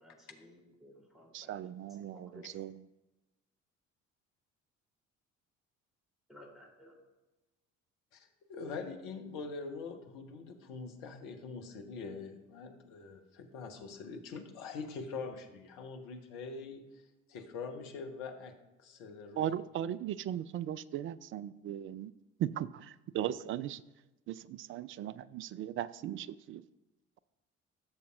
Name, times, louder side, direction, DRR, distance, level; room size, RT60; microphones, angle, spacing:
voice 1, 0.0-1.7 2.1-2.6 6.3-7.0, left 1 dB, ahead, -2 dB, 3.3 m, -56 dB
voice 2, 1.3-2.9 19.4-22.1 22.4-23.8 24.3-26.6, right 11 dB, 35° right, 16 dB, 0.4 m, -38 dB
voice 3, 8.1-19.5, left 4 dB, 60° left, 4 dB, 1.2 m, -44 dB
16.0 x 6.9 x 2.5 m, 1.0 s
figure-of-eight pair, 50°, 39 cm